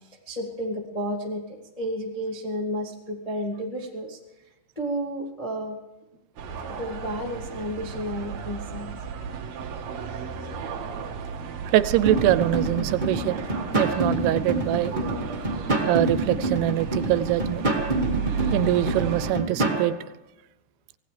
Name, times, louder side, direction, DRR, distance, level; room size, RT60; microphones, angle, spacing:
voice 1, 0.3-4.2 4.7-5.8 6.8-8.9, equal, 35° left, -2 dB, 0.6 m, -31 dB
sound 1, 6.4-19.3, right 6 dB, 55° right, 2.1 m, -34 dB
voice 2, 11.7-13.4 13.7-14.9 15.9-17.7 18.5-19.9, right 14 dB, 85° right, 13 dB, 2.7 m, -23 dB
sound 2, 12.0-19.9, right 2 dB, 20° right, 1.2 m, -27 dB
25.0 x 17.5 x 3.4 m, 1.0 s
omnidirectional pair, 4.6 m